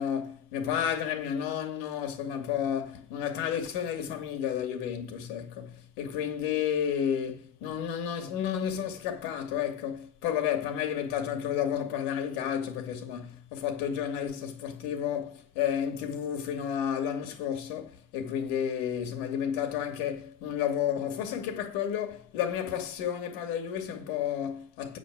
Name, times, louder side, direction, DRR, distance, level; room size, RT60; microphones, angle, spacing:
voice 1, 0.0-25.0, left 9 dB, 85° left, 2.7 m, -31 dB
9.1 x 5.1 x 7.4 m
cardioid pair, 170°, 49 cm